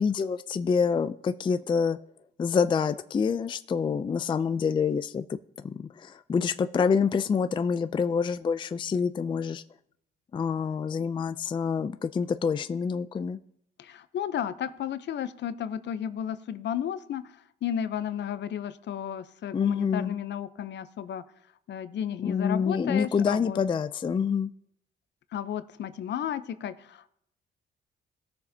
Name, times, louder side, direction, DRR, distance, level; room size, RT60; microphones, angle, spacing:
voice 1, 0.0-2.0 2.4-5.4 5.8-9.6 10.3-13.4 19.5-20.2 22.2-24.5, left 6 dB, 25° left, 0.4 m, -27 dB
voice 2, 13.8-17.3 17.6-21.2 21.7-23.6 25.3-27.1, left 9 dB, 65° left, 0.7 m, -33 dB
18.0 x 6.7 x 2.7 m
cardioid pair, 90°, 20 cm